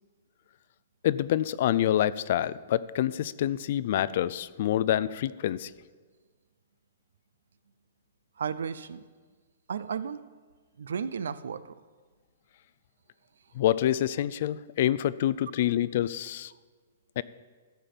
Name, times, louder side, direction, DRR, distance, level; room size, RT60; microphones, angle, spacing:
voice 1, 1.0-5.7 13.5-16.5 17.2-17.3, left 12 dB, 50° left, 18 dB, 0.4 m, -27 dB
voice 2, 8.4-9.0 9.7-10.2 10.8-11.6, right 7 dB, 85° right, 16 dB, 0.5 m, -33 dB
14.0 x 5.2 x 7.6 m, 1.5 s
hypercardioid pair, 155°, 0 cm